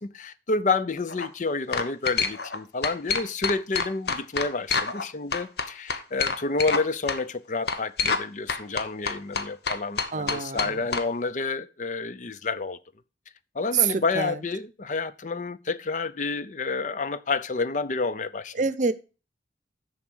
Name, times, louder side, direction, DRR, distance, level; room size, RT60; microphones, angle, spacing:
voice 1, 0.0-12.8 13.6-18.5, left 3 dB, 45° left, 0.5 m, -29 dB
sound 1, 1.0-1.3 1.7-2.6 2.8-5.0 5.3-6.8 7.1-7.2 7.7-8.2 8.5-11.0, left 5 dB, 60° left, 1.0 m, -27 dB
voice 2, 10.1-10.8 13.7-14.3 18.6-18.9, right 6 dB, 45° right, 0.7 m, -26 dB
7.1 x 6.3 x 6.2 m
head